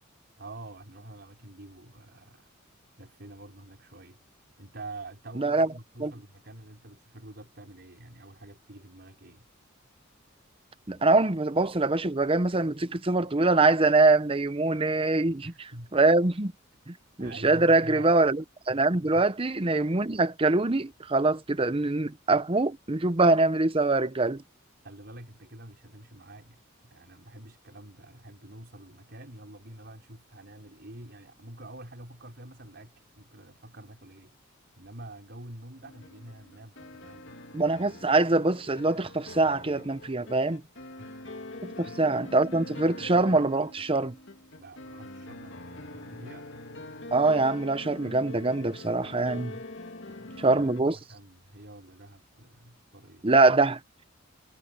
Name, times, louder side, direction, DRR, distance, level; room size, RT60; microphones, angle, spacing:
voice 1, 0.4-2.5 3.0-4.2 4.6-9.4 15.4-15.9 17.2-18.1 19.1-19.3 24.8-37.3 41.0-41.2 41.8-42.0 44.5-46.5 50.1-53.3, right 1 dB, 55° right, 4.7 m, -47 dB
voice 2, 5.4-5.7 6.0-6.1 10.9-15.5 15.9-16.5 16.9-24.4 37.5-40.6 41.6-44.2 47.1-49.6 50.4-51.0 53.2-53.8, right 2 dB, 25° right, 0.8 m, -24 dB
sound 1, 35.8-50.8, left 2 dB, 60° left, 2.9 m, -44 dB
head